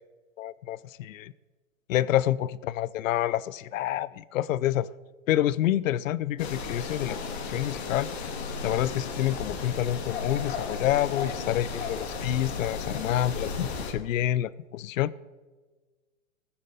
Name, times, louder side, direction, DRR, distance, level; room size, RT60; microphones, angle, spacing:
voice 1, 0.4-1.3 1.9-4.9 5.3-8.1 8.6-15.1, left 12 dB, 75° left, 20 dB, 0.5 m, -28 dB
sound 1, 6.4-13.9, left 4 dB, 50° left, 2.0 m, -34 dB
19.5 x 7.8 x 4.0 m, 1.3 s
hypercardioid pair, 155°, 40 cm